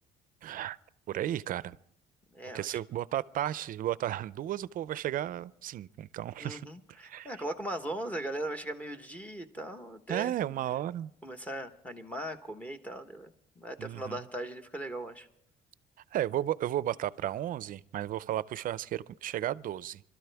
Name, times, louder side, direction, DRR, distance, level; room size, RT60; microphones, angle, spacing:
voice 1, 0.4-0.8 1.1-1.8 2.5-6.7 7.0-7.3 10.1-11.1 13.8-14.2 16.1-20.0, right 12 dB, 55° right, 0.5 m, -34 dB
voice 2, 2.3-2.8 6.4-10.3 11.2-15.3, right 1 dB, 10° left, 1.2 m, -39 dB
26.0 x 13.0 x 3.5 m
cardioid pair, 110°, 17 cm